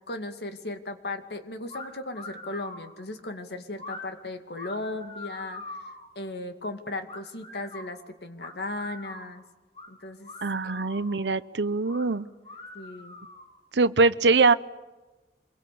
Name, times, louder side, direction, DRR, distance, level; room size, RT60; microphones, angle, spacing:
voice 1, 0.1-5.6 6.2-9.4 9.9-10.3 12.7-13.1, left 2 dB, 75° left, 7 dB, 2.3 m, -36 dB
sound 1, 1.7-1.9 2.1-2.9 3.8-4.0 4.5-6.1 7.1-7.9 8.4-9.3 9.7-9.9 10.2-11.3 11.8-12.1 12.4-13.6, left 2 dB, 30° left, 4.7 m, -43 dB
voice 2, 10.4-12.3 13.7-14.5, right 3 dB, 90° right, 13 dB, 0.8 m, -22 dB
26.0 x 22.0 x 8.5 m, 1.1 s
head